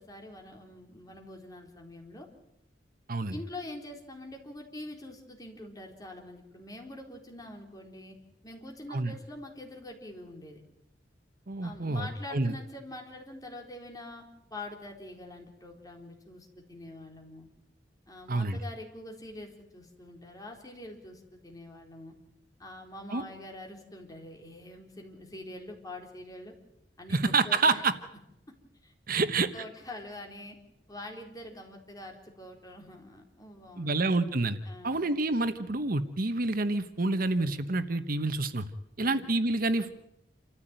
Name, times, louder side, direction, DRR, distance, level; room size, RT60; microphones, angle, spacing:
voice 1, 0.0-2.3 3.3-8.2 8.4-10.6 11.6-14.2 14.5-17.5 18.1-22.2 22.6-26.5 27.0-27.9 28.8-29.3 29.5-30.6 30.9-33.9 34.7-35.1 39.0-39.2, left 1 dB, 20° left, 2 dB, 4.2 m, -45 dB
voice 2, 11.5-12.5 18.3-18.6 23.1-23.2 27.1-27.9 29.1-29.5 33.8-34.6 34.8-38.6 39.0-39.9, right 3 dB, 55° right, 11 dB, 1.1 m, -28 dB
28.0 x 14.5 x 9.0 m, 0.84 s
head